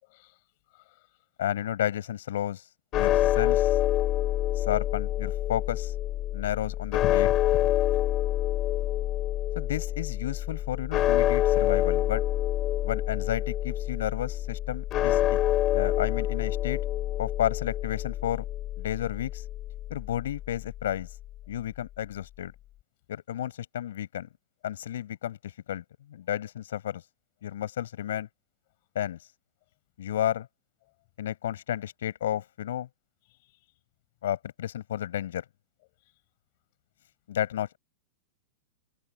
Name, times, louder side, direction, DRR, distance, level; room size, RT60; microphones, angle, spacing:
voice 1, 0.7-1.1 4.1-4.2 7.0-7.3 7.6-8.0 33.3-33.6, left 23 dB, 40° left, 5.7 m, -41 dB
voice 2, 1.4-2.6 2.9-3.7 4.6-5.9 6.3-7.3 9.6-12.2 12.8-15.4 15.7-16.8 17.2-18.4 18.8-19.4 19.9-21.1 21.5-22.5 23.1-24.3 24.6-25.4 25.7-27.0 27.4-28.3 29.0-29.2 30.0-30.5 31.2-32.9 34.2-35.4 37.3-37.8, left 11 dB, 70° left, 7.2 m, -32 dB
sound 1, 2.9-21.2, left 13 dB, 25° left, 3.2 m, -27 dB
supercardioid pair, 175°, 0 cm